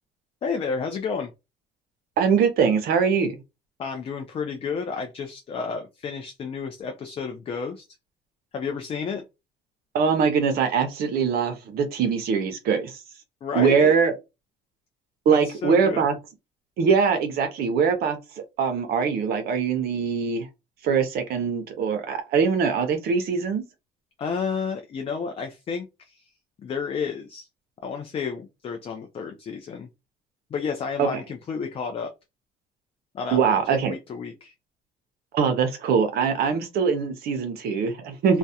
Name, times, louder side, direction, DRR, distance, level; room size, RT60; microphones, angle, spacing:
voice 1, 0.4-1.3 3.8-7.8 8.5-9.2 13.4-13.9 15.3-16.1 24.2-26.2 26.6-27.5 27.8-29.9 30.5-32.1 33.1-34.5, left 5 dB, 35° left, 0.4 m, -31 dB
voice 2, 2.2-3.4 9.9-13.0 13.5-14.1 15.3-16.1 16.8-18.2 18.6-20.5 20.8-23.6 31.0-31.1 33.3-33.9 35.3-38.4, right 6 dB, 65° right, 0.5 m, -22 dB
2.3 x 2.0 x 2.7 m
cardioid pair, 110°, 17 cm